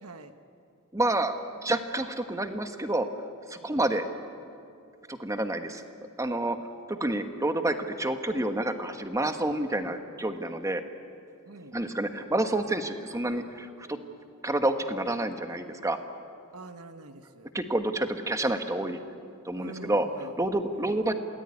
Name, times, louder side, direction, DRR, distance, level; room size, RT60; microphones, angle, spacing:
voice 1, 0.0-0.3 11.4-11.7 16.5-17.5 19.6-20.3 20.7-21.0, right 2 dB, 80° right, 8 dB, 1.3 m, -45 dB
voice 2, 0.9-1.4 1.6-3.1 3.5-4.0 5.1-5.8 6.2-6.6 6.9-10.8 11.7-14.0 14.4-16.0 17.5-19.0 19.4-21.1, right 1 dB, 15° right, 7 dB, 1.3 m, -29 dB
28.0 x 18.5 x 9.7 m, 2.5 s
head